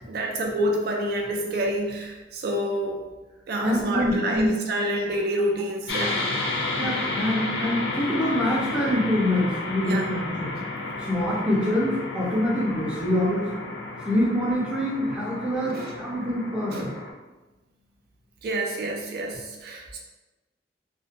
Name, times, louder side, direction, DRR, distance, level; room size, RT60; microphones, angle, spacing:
voice 1, 0.1-3.0 3.5-6.2 9.9-10.0 15.7-15.9 16.7-16.8 18.4-20.0, right 1 dB, 60° right, 0 dB, 0.4 m, -28 dB
voice 2, 3.6-4.5 6.8-10.6 11.1-13.5 14.1-16.9, left 1 dB, 5° right, -6 dB, 0.5 m, -25 dB
sound 1, 5.9-17.1, left 2 dB, 75° left, 0.4 m, -32 dB
2.5 x 2.2 x 2.5 m, 1.1 s
head